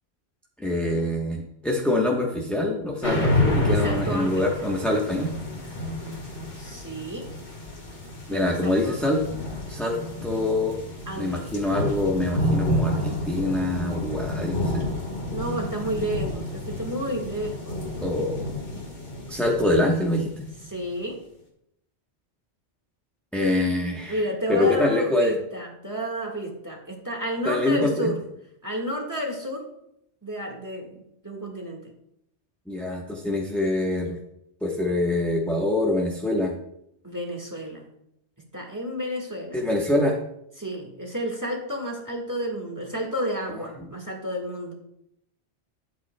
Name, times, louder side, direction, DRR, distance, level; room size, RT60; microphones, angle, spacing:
voice 1, 0.6-5.3 8.3-9.2 9.7-10.7 11.2-14.9 18.0-18.4 19.3-20.3 23.3-24.2 24.5-25.3 27.4-28.1 32.7-34.2 34.6-36.5 39.5-40.2, left 1 dB, ahead, -2 dB, 0.9 m, -25 dB
sound 1, 3.0-20.8, left 1 dB, 85° left, 2.2 m, -29 dB
voice 2, 3.6-4.5 6.6-7.3 8.3-9.0 11.1-11.5 15.3-17.8 20.7-21.2 24.1-28.2 28.6-29.7 30.2-31.9 37.0-37.9 38.5-39.6 40.6-44.7, equal, 15° right, 0 dB, 1.6 m, -31 dB
12.0 x 8.2 x 2.2 m, 0.78 s
omnidirectional pair, 1.1 m